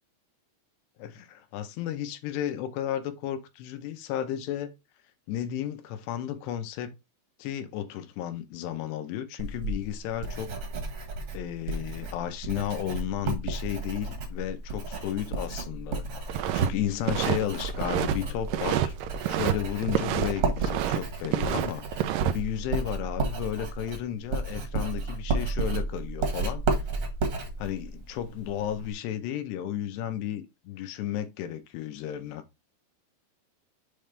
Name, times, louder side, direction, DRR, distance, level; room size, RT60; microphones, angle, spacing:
voice 1, 1.0-4.7 5.3-6.9 7.4-10.5 11.3-19.0 19.3-26.6 27.6-32.4, left 11 dB, 85° left, 3.0 m, -33 dB
Writing, 9.4-28.9, right 3 dB, 55° right, 1.6 m, -33 dB
sound 1, 16.3-16.7 17.0-18.2 18.5-19.5 19.8-21.0 21.2-22.3, right 11 dB, 90° right, 1.9 m, -28 dB
7.6 x 3.4 x 5.2 m
omnidirectional pair, 4.8 m